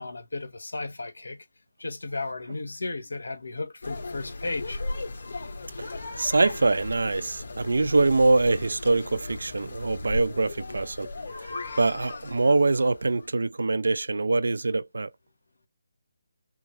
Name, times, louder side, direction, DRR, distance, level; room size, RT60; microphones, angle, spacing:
voice 1, 0.0-1.4 1.8-4.8, left 3 dB, 90° left, 1.3 m, -34 dB
sound 1, 3.8-13.3, left 2 dB, 65° left, 2.0 m, -37 dB
voice 2, 6.2-11.1 11.8-15.1, right 3 dB, 80° right, 0.5 m, -24 dB
5.6 x 2.1 x 3.2 m
figure-of-eight pair, 160°, 0 cm